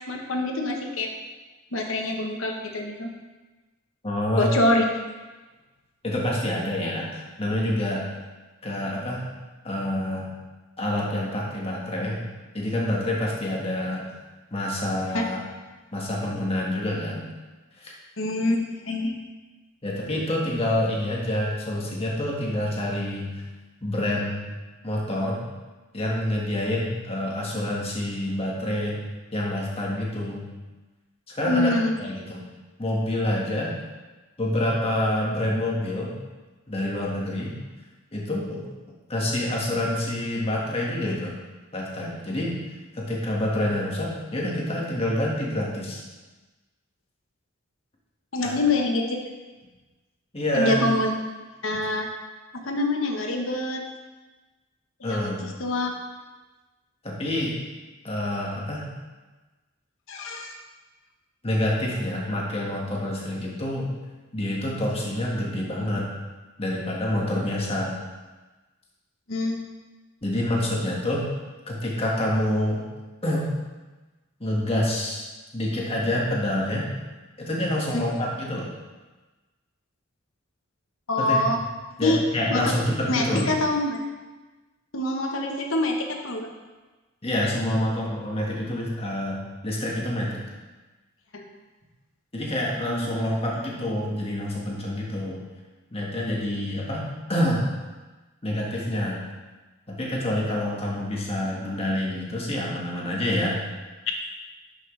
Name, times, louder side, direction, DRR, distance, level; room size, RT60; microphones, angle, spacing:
voice 1, 0.1-1.1 1.7-3.1 4.4-4.8 15.1-15.2 18.2-18.6 18.9-19.1 31.4-31.9 48.3-49.2 50.5-51.1 51.6-52.1 52.6-53.8 55.0-55.3 55.6-55.9 60.1-60.5 69.3-69.6 77.9-78.0 81.1-81.6 82.0-82.2 82.5-82.6 83.1-84.0 84.9-86.5 91.3-91.4 92.9-93.1, left 2 dB, 70° left, 3 dB, 1.2 m, -25 dB
voice 2, 4.0-4.5 6.0-8.0 8.6-9.3 9.6-10.3 10.8-12.2 12.5-14.1 14.5-15.4 15.9-17.3 17.8-17.9 19.8-23.4 23.8-24.5 24.8-25.4 25.9-29.0 29.3-30.5 31.3-31.7 32.0-32.4 32.8-33.7 34.4-36.1 36.7-37.5 38.1-38.7 39.1-41.3 41.7-42.6 42.9-46.0 48.4-48.6 50.3-50.8 55.0-55.4 57.0-57.5 58.0-58.9 61.4-63.9 64.3-66.1 66.6-68.0 70.2-71.2 71.7-72.8 73.2-73.5 74.4-75.3 75.5-76.9 77.4-78.7 81.2-81.4 82.0-83.5 87.2-90.4 92.3-95.4 95.9-97.7 98.4-99.2 99.9-103.6, left 1 dB, 30° left, -3 dB, 1.7 m, -27 dB
11.0 x 6.3 x 3.3 m, 1.2 s
head